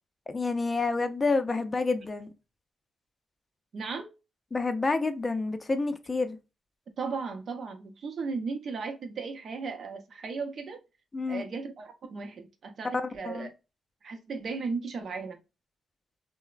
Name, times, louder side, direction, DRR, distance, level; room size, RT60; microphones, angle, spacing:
voice 1, 0.3-2.3 4.5-6.4 11.1-11.5 12.9-13.5, left 3 dB, 35° left, 0.4 m, -29 dB
voice 2, 3.7-4.1 7.0-10.8 11.3-13.5 14.0-15.4, right 4 dB, 65° right, 0.6 m, -36 dB
3.0 x 2.0 x 2.3 m
cardioid pair, 75°, 0 cm